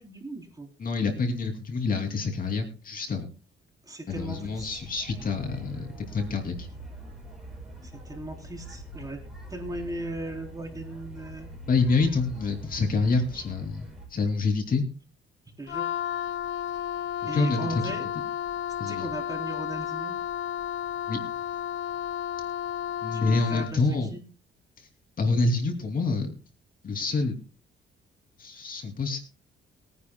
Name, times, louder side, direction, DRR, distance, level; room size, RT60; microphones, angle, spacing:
voice 1, 0.0-0.7 3.8-4.8 7.8-9.2 9.5-11.5 13.3-13.4 15.6-15.9 17.2-18.1 18.9-20.1 23.1-24.2, right 2 dB, 20° right, 1 dB, 3.4 m, -38 dB
voice 2, 0.8-3.3 4.1-6.7 11.7-14.8 17.3-17.9 18.8-19.1 21.1-21.2 23.0-24.1 25.2-26.3 26.8-27.4 28.4-29.2, left 3 dB, 45° left, 4 dB, 2.6 m, -27 dB
sound 1, 4.1-14.1, right 1 dB, ahead, 6.8 m, -44 dB
Wind instrument woodwind instrument, 15.7-23.8, left 10 dB, 75° left, 0.6 m, -32 dB
22.5 x 10.0 x 2.2 m, 0.34 s
cardioid pair, 90°, 20 cm